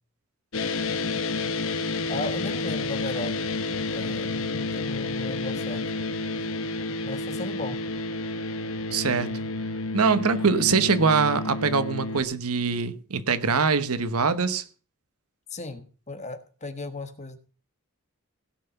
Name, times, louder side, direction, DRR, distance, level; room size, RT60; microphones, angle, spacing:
sound 1, 0.5-12.2, left 3 dB, 65° left, 1.0 m, -30 dB
voice 1, 2.1-3.4 3.9-5.8 7.0-7.8 15.5-17.4, left 2 dB, 30° left, 1.3 m, -36 dB
voice 2, 8.9-9.4 9.9-14.6, right 5 dB, 80° right, 1.0 m, -23 dB
17.0 x 5.8 x 6.9 m
head